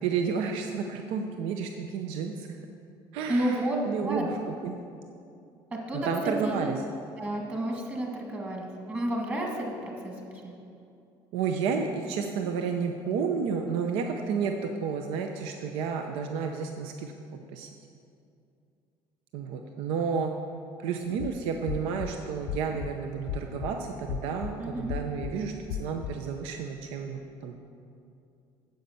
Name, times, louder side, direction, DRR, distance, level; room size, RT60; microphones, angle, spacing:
voice 1, 0.0-2.5 3.1-4.4 4.6-4.8 5.9-6.8 11.3-17.1 17.5-17.7 19.3-20.3 20.8-25.5 25.8-27.6, right 6 dB, 85° right, 4 dB, 0.7 m, -31 dB
voice 2, 3.3-3.8 4.0-4.2 5.9-6.8 7.2-10.1 10.4-10.5 24.6-24.9, right 1 dB, 20° right, 0 dB, 1.7 m, -31 dB
sound 1, 21.1-21.3 21.7-22.1 22.5-22.9 23.3-23.7 24.1-24.5 24.9-25.3 25.7-26.1, left 11 dB, 90° left, 0.5 m, -35 dB
9.5 x 7.9 x 7.0 m, 2.5 s
cardioid pair, 170°, 9 cm